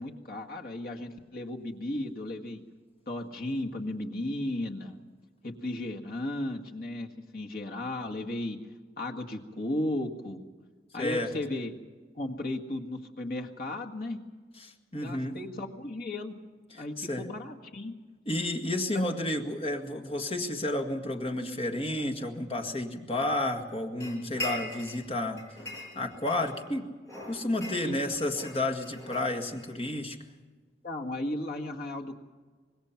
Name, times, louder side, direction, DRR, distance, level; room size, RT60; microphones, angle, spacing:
voice 1, 0.0-2.6 3.1-5.0 5.4-8.6 9.0-10.4 10.9-11.7 12.2-14.2 15.0-16.4 16.7-17.9 27.8-28.2 30.8-32.2, left 1 dB, 55° left, 1 dB, 1.9 m, -35 dB
voice 2, 11.0-11.3 14.6-15.4 16.7-17.3 18.3-25.4 26.0-26.9 27.3-30.2, left 1 dB, 30° left, 4 dB, 1.8 m, -31 dB
sound 1, 24.0-25.1 25.4-26.7 27.0-29.7, left 1 dB, 15° left, 6.8 m, -40 dB
25.5 x 20.5 x 5.9 m, 1.5 s
head